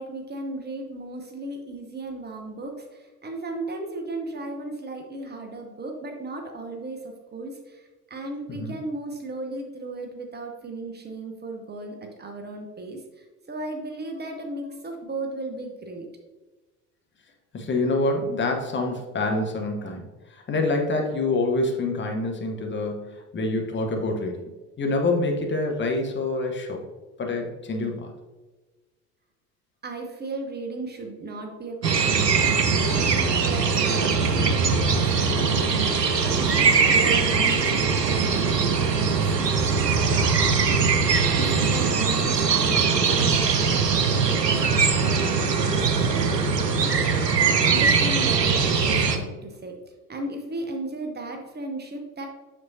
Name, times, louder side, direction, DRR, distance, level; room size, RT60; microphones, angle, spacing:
voice 1, 0.0-16.1 29.8-47.2 47.6-49.8 50.1-52.3, right 2 dB, 20° right, 3 dB, 1.1 m, -36 dB
voice 2, 17.5-24.4 24.8-26.8 27.2-28.1, left 2 dB, 25° left, 2 dB, 1.1 m, -26 dB
sound 1, 31.8-49.2, right 5 dB, 85° right, 0.7 m, -21 dB
7.8 x 6.5 x 2.8 m, 1.2 s
figure-of-eight pair, 65°, 48 cm